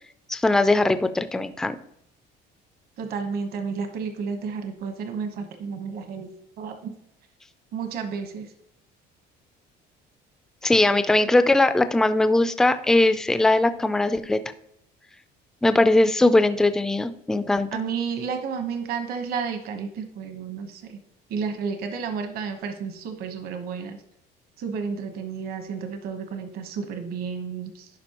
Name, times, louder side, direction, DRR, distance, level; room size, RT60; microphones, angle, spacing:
voice 1, 0.3-1.8 10.6-14.4 15.6-17.7, left 2 dB, 5° left, 11 dB, 0.3 m, -20 dB
voice 2, 3.0-6.3 6.6-6.9 7.7-8.5 17.7-21.0 21.3-24.0 24.6-27.9, right 6 dB, 60° right, 6 dB, 1.1 m, -31 dB
11.0 x 5.2 x 2.9 m, 0.76 s
cardioid pair, 160°, 18 cm